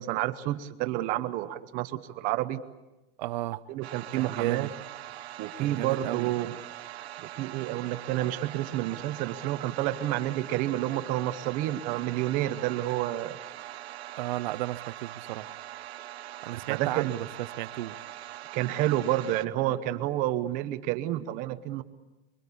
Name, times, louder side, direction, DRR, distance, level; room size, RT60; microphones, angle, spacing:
voice 1, 0.0-2.6 3.7-4.7 5.4-6.6 7.2-13.4 16.7-17.1 18.5-21.8, right 14 dB, 25° right, 0.8 m, -29 dB
voice 2, 3.2-3.6 4.2-4.7 5.6-6.3 14.2-15.5 16.4-17.3 17.6-18.0, right 16 dB, 50° right, 0.8 m, -33 dB
sound 1, 3.8-19.5, right 13 dB, 85° right, 1.1 m, -42 dB
24.5 x 23.5 x 8.4 m
supercardioid pair, 170°, 31 cm